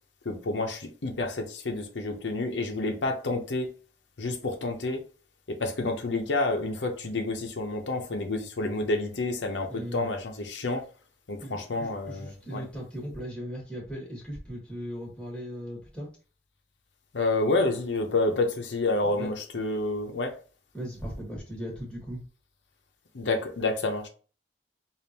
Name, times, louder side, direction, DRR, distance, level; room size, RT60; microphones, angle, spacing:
voice 1, 0.2-3.7 4.2-5.0 5.6-10.8 11.3-12.6 17.1-20.3 23.1-24.1, left 2 dB, 90° left, 0.7 m, -29 dB
voice 2, 9.7-10.1 11.4-16.1 19.0-19.4 20.7-22.2, equal, 5° left, 1.4 m, -38 dB
5.1 x 2.5 x 2.8 m
head